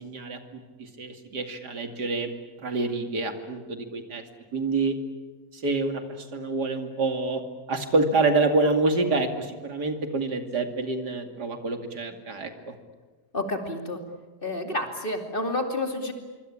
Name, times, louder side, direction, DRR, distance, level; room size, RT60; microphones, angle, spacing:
voice 1, 0.0-2.3 2.6-4.2 4.5-5.0 5.5-7.4 7.7-12.7, right 3 dB, 90° right, 6 dB, 3.1 m, -27 dB
voice 2, 13.3-14.0 14.4-16.1, left 2 dB, 30° left, 4 dB, 2.9 m, -29 dB
26.0 x 24.0 x 8.6 m, 1.3 s
omnidirectional pair, 1.7 m